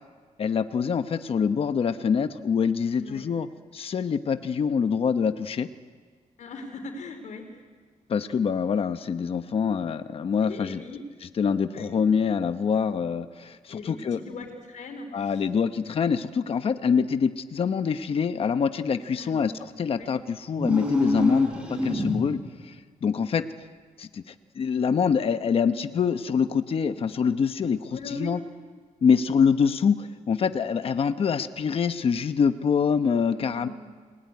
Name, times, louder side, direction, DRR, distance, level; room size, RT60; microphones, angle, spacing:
voice 1, 0.4-3.5 3.7-5.7 8.1-10.8 11.4-14.2 15.1-19.5 19.8-22.8 23.0-23.4 24.0-28.4 29.0-33.7, left 6 dB, 45° left, 9 dB, 1.0 m, -25 dB
voice 2, 6.4-7.5 10.4-11.0 11.7-11.9 13.7-15.3 19.1-19.5 19.9-20.1 27.9-28.3 33.4-33.7, left 3 dB, 65° left, 5 dB, 4.7 m, -39 dB
sound 1, 20.5-22.5, equal, 10° right, 5.2 m, -27 dB
29.0 x 20.5 x 9.7 m, 1.5 s
wide cardioid pair, 175°, 14 cm